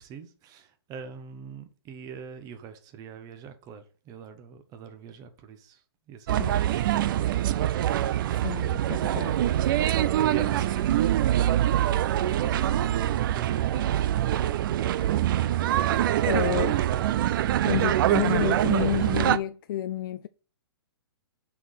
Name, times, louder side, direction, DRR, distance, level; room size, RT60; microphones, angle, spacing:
voice 1, 0.0-7.5 9.0-9.2 10.2-11.8 12.2-13.8, right 6 dB, 25° right, 1.0 m, -43 dB
sound 1, 6.3-19.4, right 12 dB, 50° right, 0.4 m, -24 dB
voice 2, 8.4-9.4 15.6-15.7 16.3-16.8 17.7-20.3, left 11 dB, 55° left, 0.4 m, -29 dB
6.0 x 4.0 x 6.2 m
hypercardioid pair, 135°, 14 cm